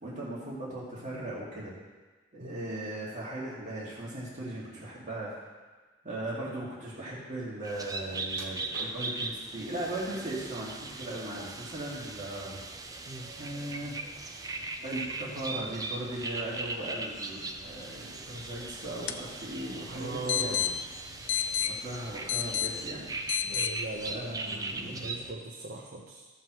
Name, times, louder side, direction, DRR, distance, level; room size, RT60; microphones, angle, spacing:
voice 1, 0.0-1.7 2.3-5.5 6.0-12.6 13.4-14.0 14.4-14.5 14.8-20.7 21.8-23.1 24.1-25.1, right 1 dB, 40° right, -7 dB, 2.1 m, -38 dB
sound 1, 7.6-25.3, right 3 dB, 20° right, 0.6 m, -39 dB
sound 2, 8.3-9.4 10.0-10.7 11.1-12.0 12.4-12.6 13.1-13.2, right 2 dB, 80° right, 1.7 m, -50 dB
sound 3, 17.5-23.7, left 9 dB, 75° left, 0.5 m, -34 dB
voice 2, 19.9-20.7 23.4-26.3, right 2 dB, 55° right, -2 dB, 0.9 m, -40 dB
14.0 x 7.2 x 3.1 m, 1.3 s
head